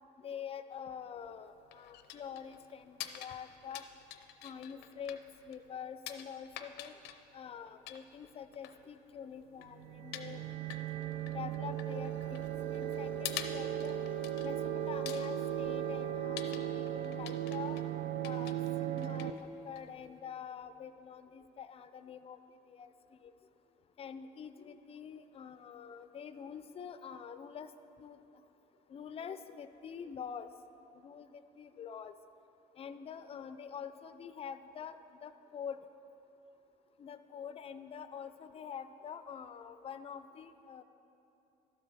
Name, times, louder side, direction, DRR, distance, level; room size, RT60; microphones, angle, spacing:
voice 1, 0.2-3.8 4.4-6.9 7.3-10.4 11.3-14.0 14.4-17.8 18.2-19.4 19.6-22.4 22.7-23.3 24.0-27.7 28.0-28.4 28.9-30.5 30.9-32.1 32.7-35.8 37.0-40.8, left 7 dB, 35° left, 12 dB, 0.4 m, -46 dB
sound 1, 1.2-20.2, left 11 dB, 85° left, 0.6 m, -49 dB
sound 2, 9.7-19.3, right 11 dB, 65° right, 0.5 m, -37 dB
12.0 x 7.5 x 4.2 m, 2.9 s
cardioid pair, 110°, 17 cm